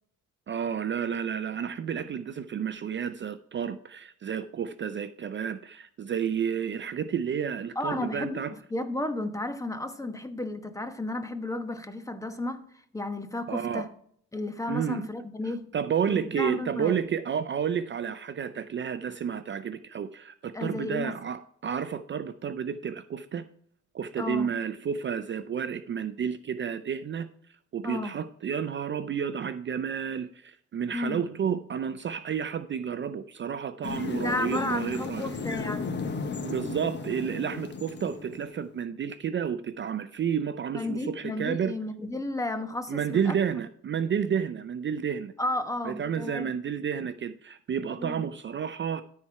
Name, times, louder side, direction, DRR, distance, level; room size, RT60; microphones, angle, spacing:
voice 1, 0.5-8.5 13.5-13.9 14.7-15.0 15.7-23.4 23.9-27.3 27.7-35.3 36.4-41.8 42.9-45.3 45.8-49.0, right 7 dB, 40° right, 0.5 m, -31 dB
voice 2, 7.7-13.9 14.3-15.7 16.1-17.0 20.5-21.2 24.2-24.5 27.8-28.2 30.9-31.2 34.2-35.9 40.7-43.4 45.4-46.5 48.0-48.2, left 2 dB, 10° left, 1.1 m, -33 dB
sound 1, 33.8-38.7, left 4 dB, 35° left, 1.1 m, -35 dB
13.0 x 4.4 x 4.6 m
cardioid pair, 90°, 30 cm